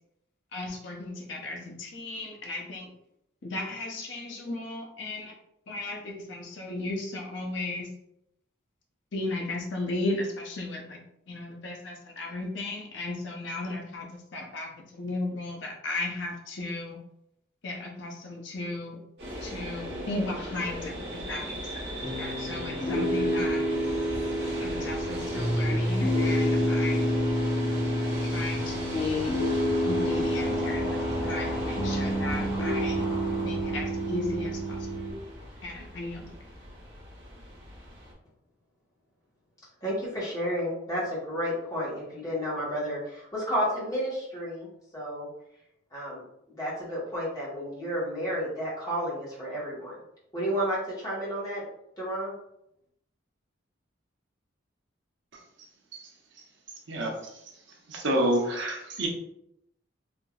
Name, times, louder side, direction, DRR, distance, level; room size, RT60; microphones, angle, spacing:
voice 1, 0.5-2.9 3.4-5.3 5.7-7.9 9.1-11.0 11.3-17.0 17.6-19.0 19.4-23.7 24.6-27.1 28.3-29.4 29.8-33.1 33.4-34.8 35.6-36.4, left 2 dB, 70° left, 0 dB, 0.7 m, -35 dB
sound 1, 19.2-38.1, equal, 55° right, 1.2 m, -37 dB
Piano, 22.0-35.1, equal, 35° left, 0.7 m, -28 dB
voice 2, 39.8-45.3 45.9-50.0 50.3-51.6 52.0-52.3, equal, 20° left, -7 dB, 1.2 m, -31 dB
voice 3, 57.9-59.1, right 1 dB, 70° right, 0 dB, 0.7 m, -27 dB
3.5 x 2.7 x 2.3 m, 0.76 s
head